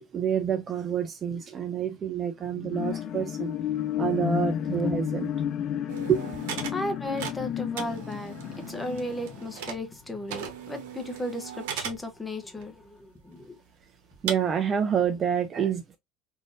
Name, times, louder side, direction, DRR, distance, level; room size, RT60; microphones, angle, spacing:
voice 1, 0.0-3.5 4.0-5.3 6.1-6.2 14.2-16.0, right 8 dB, 25° right, 0.4 m, -28 dB
sound 1, 2.5-10.3 10.8-10.9, left 10 dB, 40° left, 0.3 m, -32 dB
sound 2, 5.9-10.0 10.3-12.1 12.6-12.7 13.3-13.4 14.3-14.4, right 8 dB, 90° right, 0.9 m, -37 dB
voice 2, 6.7-13.6, left 1 dB, 10° left, 0.7 m, -35 dB
3.6 x 2.6 x 2.4 m
cardioid pair, 155°, 0 cm